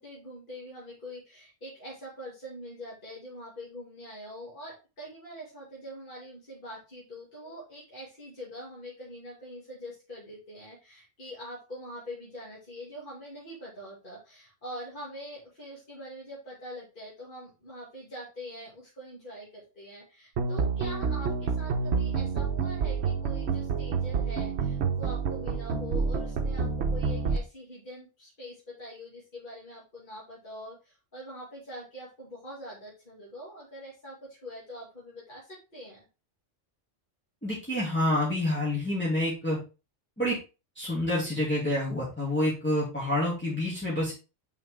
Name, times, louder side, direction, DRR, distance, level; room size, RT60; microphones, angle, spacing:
voice 1, 0.0-36.1, equal, 45° left, -6 dB, 2.6 m, -44 dB
sound 1, 20.4-27.4, right 5 dB, 65° right, 1.1 m, -28 dB
voice 2, 37.4-39.6 40.2-40.4 40.8-44.1, left 1 dB, 10° left, -7 dB, 2.3 m, -28 dB
6.3 x 4.9 x 3.5 m, 0.30 s
omnidirectional pair, 1.2 m